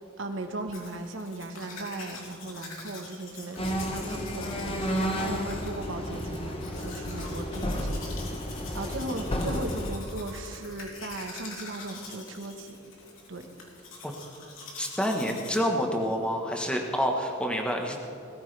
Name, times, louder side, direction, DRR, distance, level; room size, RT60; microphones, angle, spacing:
voice 1, 0.0-8.0 8.7-12.8 13.3-13.4, right 2 dB, 70° right, 5 dB, 1.2 m, -37 dB
Domestic sounds home sounds, 0.7-15.6, left 3 dB, 80° left, 3.1 m, -45 dB
sound 1, 3.6-9.9, equal, 25° left, 1.0 m, -32 dB
voice 2, 14.8-18.0, equal, 5° left, 2 dB, 1.1 m, -28 dB
20.0 x 14.0 x 3.3 m, 2.8 s
head